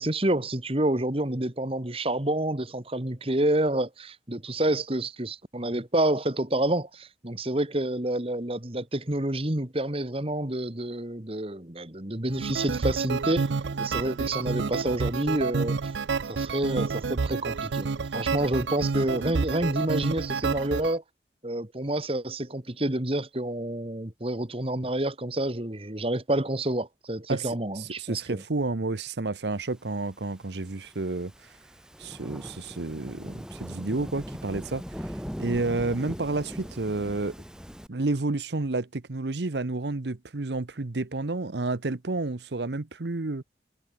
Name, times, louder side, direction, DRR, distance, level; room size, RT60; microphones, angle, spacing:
voice 1, 0.0-15.9 16.3-21.0 21.4-28.4, right 1 dB, 30° right, 1.8 m, -28 dB
sound 1, 12.3-20.9, right 4 dB, 90° right, 0.6 m, -29 dB
voice 2, 27.8-31.3 32.0-35.1 35.4-37.3 37.9-43.4, right 2 dB, 75° right, 0.9 m, -30 dB
Thunderstorm / Rain, 30.2-37.9, equal, 5° right, 2.8 m, -40 dB
head